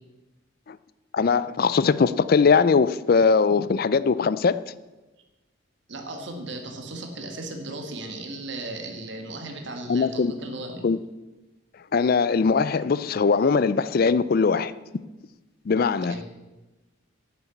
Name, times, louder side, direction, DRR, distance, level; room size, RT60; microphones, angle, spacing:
voice 1, 1.1-4.6 9.9-10.3 10.8-11.0 11.9-14.7 15.7-16.2, left 5 dB, 45° left, 0.4 m, -21 dB
voice 2, 5.9-10.8 16.0-16.2, right 2 dB, 60° right, 1.7 m, -36 dB
10.5 x 6.9 x 8.3 m
head